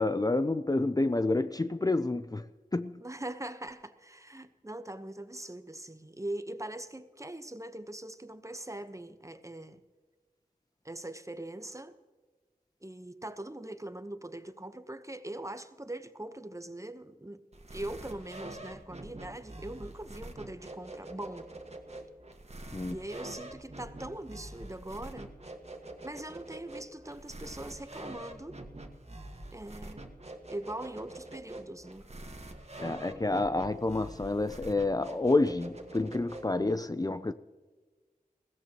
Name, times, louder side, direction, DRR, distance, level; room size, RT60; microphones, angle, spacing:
voice 1, 0.0-2.4 2.7-2.9 22.7-23.0 32.8-37.3, left 2 dB, 25° left, 0.5 m, -29 dB
voice 2, 3.0-9.8 10.8-12.0 12.8-17.4 17.7-21.5 22.9-25.3 26.0-28.6 29.5-30.0 30.5-32.1, right 1 dB, 20° right, 1.0 m, -41 dB
sound 1, 17.5-36.7, right 1 dB, 45° right, 1.7 m, -45 dB
21.5 x 16.5 x 3.0 m
wide cardioid pair, 50°, 15 cm